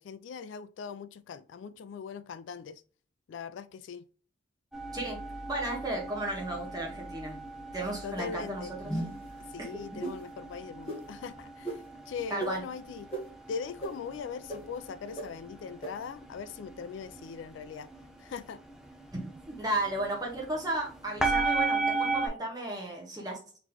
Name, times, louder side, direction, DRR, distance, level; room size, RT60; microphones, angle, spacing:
voice 1, 0.0-2.8 3.3-4.0 8.0-8.7 9.5-13.1 13.5-17.9 18.2-18.6, left 6 dB, 70° left, 0.3 m, -40 dB
sound 1, 4.7-22.3, right 3 dB, 5° right, 0.5 m, -36 dB
voice 2, 5.5-7.4 7.7-8.9 9.9-10.0 12.3-12.6 19.1-23.4, right 1 dB, 20° right, 1.4 m, -34 dB
sound 2, 8.8-9.3 10.0-10.2 10.9-11.0 11.6-11.8 12.4-12.5 13.1-13.2 13.8-13.9 14.5-14.6 15.2-15.3 15.8-15.9, right 2 dB, 30° left, 1.2 m, -34 dB
4.0 x 3.0 x 2.9 m
head